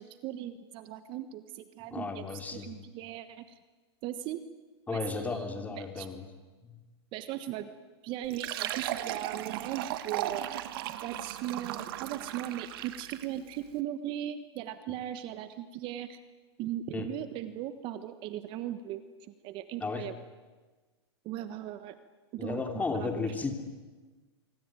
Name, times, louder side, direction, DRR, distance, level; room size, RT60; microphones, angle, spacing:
voice 1, 0.0-3.4 4.0-4.4 4.9-6.1 7.1-7.7 8.0-10.4 11.0-16.2 16.6-19.0 19.4-20.1 21.2-22.0 22.3-23.4, right 12 dB, 35° right, 11 dB, 1.4 m, -38 dB
voice 2, 1.9-2.7 4.9-6.2 6.7-6.8 16.9-17.1 19.8-20.1 22.4-23.5, left 4 dB, 10° left, 6 dB, 3.0 m, -34 dB
Fill (with liquid), 8.2-13.4, right 13 dB, 55° right, 1.7 m, -36 dB
25.0 x 24.5 x 9.3 m, 1.3 s
hypercardioid pair, 135°, 14 cm